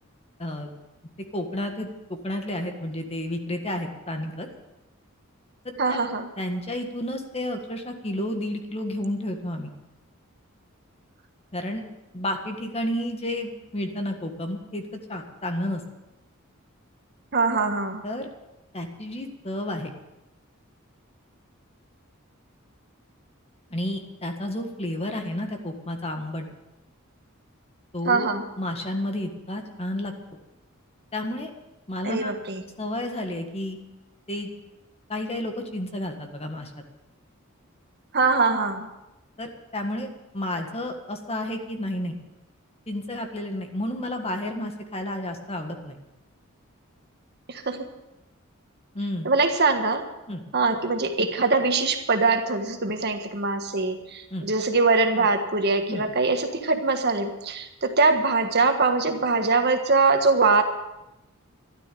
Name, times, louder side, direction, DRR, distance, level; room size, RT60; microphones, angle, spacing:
voice 1, 0.4-0.7 1.3-4.5 6.4-9.7 11.5-11.8 12.1-15.8 18.0-18.3 18.7-19.9 23.7-26.5 27.9-28.3 28.6-30.1 31.1-31.5 31.9-32.3 32.8-33.8 34.3-34.5 35.1-36.8 39.4-42.2 42.9-46.0 48.9-49.3 50.3-50.4 54.3-54.5 55.9-56.0, left 1 dB, 30° left, 4 dB, 1.7 m, -31 dB
voice 2, 5.8-6.3 17.3-18.1 28.0-28.5 32.0-32.6 38.1-38.9 47.5-47.9 49.2-50.0 50.5-60.6, right 3 dB, 50° right, 5 dB, 1.5 m, -23 dB
13.5 x 12.0 x 6.9 m, 0.97 s
head